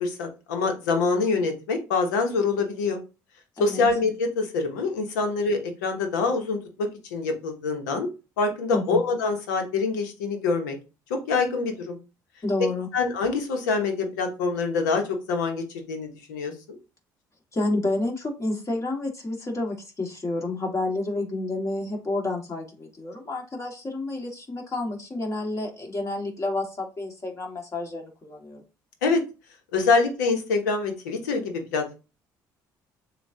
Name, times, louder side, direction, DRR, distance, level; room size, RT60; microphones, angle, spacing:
voice 1, 0.0-3.0 3.6-8.1 8.4-10.8 11.1-12.0 12.9-16.8 29.0-29.2 29.7-31.9, left 4 dB, 90° left, 4 dB, 0.9 m, -25 dB
voice 2, 12.4-12.9 17.5-28.6, left 2 dB, 30° left, 1 dB, 1.8 m, -29 dB
6.9 x 2.4 x 2.7 m, 0.30 s
hypercardioid pair, 60°, 9 cm